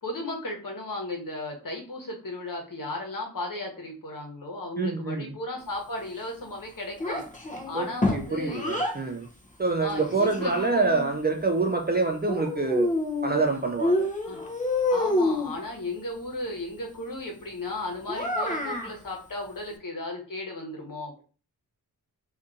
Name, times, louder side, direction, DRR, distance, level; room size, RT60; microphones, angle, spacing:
voice 1, 0.0-7.3 7.7-8.6 9.8-10.8 14.2-14.4 14.9-21.2, left 2 dB, 60° left, 1 dB, 1.2 m, -35 dB
voice 2, 4.8-5.3 7.7-7.9 8.1-9.3 9.6-12.9 13.2-14.1, right 3 dB, 25° right, 2 dB, 0.4 m, -26 dB
Child speech kid speaking, 7.0-9.0 9.9-11.1 12.3-13.4 13.8-15.5 18.1-18.9, left 1 dB, 20° left, 0.6 m, -28 dB
2.7 x 2.5 x 3.6 m, 0.37 s
wide cardioid pair, 80°, 37 cm